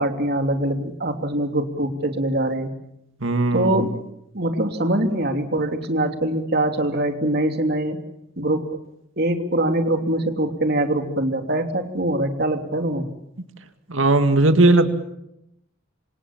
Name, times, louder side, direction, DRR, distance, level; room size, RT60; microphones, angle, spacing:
voice 1, 0.0-2.7 3.5-4.0 4.3-8.0 8.4-8.7 9.2-13.1, right 1 dB, 55° right, 5 dB, 3.1 m, -23 dB
voice 2, 3.2-3.9 13.9-14.9, right 2 dB, 85° right, 7 dB, 2.2 m, -17 dB
27.5 x 26.0 x 7.4 m, 0.82 s
head